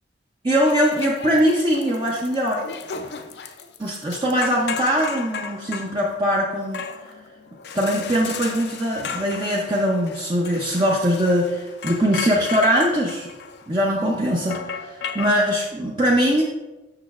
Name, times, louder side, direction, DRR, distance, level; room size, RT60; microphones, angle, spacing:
voice 1, 0.4-2.7 2.9-3.1 3.8-6.8 7.7-13.3 13.7-16.4, equal, 25° right, -3 dB, 0.5 m, -21 dB
sound 1, 0.6-15.4, left 6 dB, 60° left, 0.4 m, -35 dB
6.5 x 6.1 x 2.4 m, 1.1 s
head